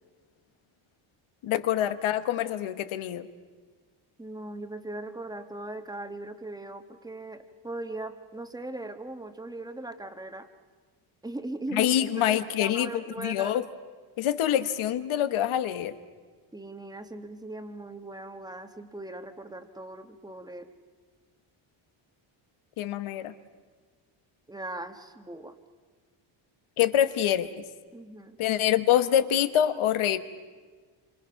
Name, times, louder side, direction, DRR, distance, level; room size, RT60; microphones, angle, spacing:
voice 1, 1.4-3.2 11.7-12.9 13.2-13.6 14.2-15.9 22.8-23.3 26.8-27.5 28.4-30.2, left 11 dB, 70° left, 11 dB, 1.4 m, -25 dB
voice 2, 4.2-10.5 11.2-13.6 16.5-20.7 24.5-25.5 27.9-28.4, right 2 dB, 10° right, 7 dB, 1.4 m, -39 dB
27.5 x 26.0 x 5.8 m, 1.5 s
cardioid pair, 125°, 50 cm